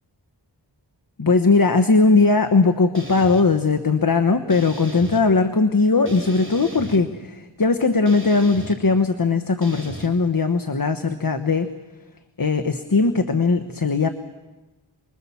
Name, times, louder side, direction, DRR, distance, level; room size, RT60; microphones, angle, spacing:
voice 1, 1.2-11.7 12.4-14.1, left 4 dB, 50° left, 7 dB, 1.2 m, -19 dB
sound 1, 2.9-3.4 4.5-5.2 6.1-7.0 8.1-8.8 9.6-10.1, right 2 dB, 25° right, 3.4 m, -36 dB
29.0 x 22.0 x 7.1 m, 1.1 s
wide cardioid pair, 40°, 44 cm